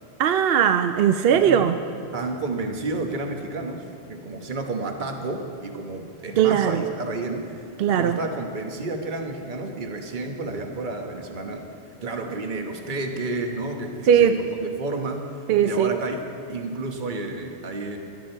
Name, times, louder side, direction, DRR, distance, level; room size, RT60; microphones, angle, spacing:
voice 1, 0.2-1.8 6.4-6.8 7.8-8.2 14.1-14.4 15.5-16.0, right 8 dB, 65° right, 8 dB, 0.7 m, -19 dB
voice 2, 1.3-1.7 2.1-11.6 12.0-15.2 15.6-16.2 16.5-18.0, right 2 dB, 45° right, 3 dB, 1.3 m, -31 dB
17.5 x 12.5 x 4.4 m, 2.4 s
omnidirectional pair, 1.1 m